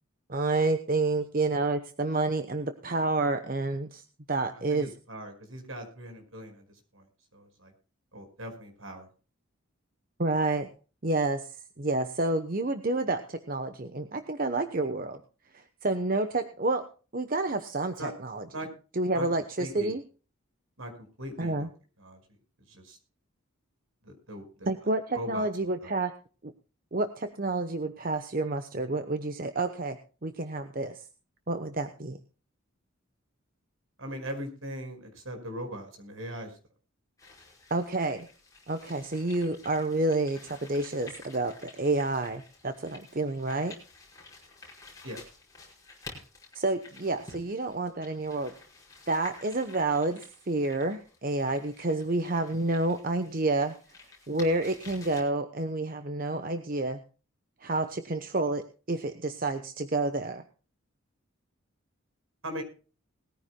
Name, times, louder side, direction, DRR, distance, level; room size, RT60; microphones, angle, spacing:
voice 1, 0.3-4.0 4.3-4.9 10.2-10.7 11.0-15.2 15.5-16.9 17.1-18.4 19.0-20.0 21.4-21.7 24.7-26.1 26.4-26.5 26.9-31.1 31.5-32.2 37.7-38.3 38.7-43.8 46.5-48.5 49.1-53.8 54.3-57.0 57.6-60.4, right 2 dB, 40° right, 8 dB, 0.9 m, -29 dB
voice 2, 4.5-7.1 7.3-7.7 8.1-9.1 18.0-18.1 18.5-18.7 19.1-19.3 19.6-20.0 20.8-20.9 21.2-21.7 22.0-22.2 22.7-23.0 24.0-24.7 25.1-25.5 25.8-25.9 34.0-36.6 45.0-45.2 62.4-62.6, equal, 70° right, 5 dB, 5.2 m, -40 dB
sound 1, 37.2-55.2, left 3 dB, 15° left, 5.3 m, -51 dB
20.5 x 14.5 x 2.3 m, 0.36 s
head